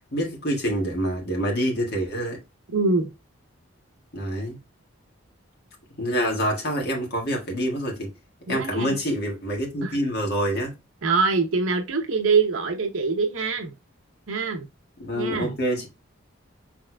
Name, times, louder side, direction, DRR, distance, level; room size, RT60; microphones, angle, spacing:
voice 1, 0.1-2.4 4.1-4.6 6.0-8.1 8.5-10.7 15.0-15.9, equal, 50° left, 1.7 m, -26 dB
voice 2, 2.7-3.1 8.5-8.9 9.8-10.0 11.0-13.7 14.3-14.7 15.1-15.6, right 4 dB, 75° right, 0.7 m, -24 dB
6.1 x 3.4 x 2.2 m
head